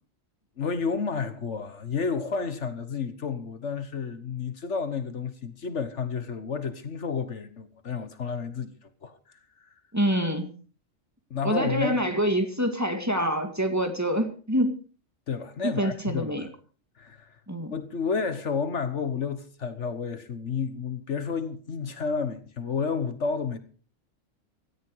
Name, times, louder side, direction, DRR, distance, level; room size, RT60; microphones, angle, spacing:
voice 1, 0.6-9.7 11.3-12.0 15.3-16.5 17.0-17.4 17.7-23.6, left 5 dB, 60° left, 1.5 m, -31 dB
voice 2, 9.9-10.6 11.4-14.8 15.6-16.5 17.5-17.7, equal, 10° right, 1.9 m, -26 dB
17.5 x 13.5 x 4.6 m
omnidirectional pair, 1.4 m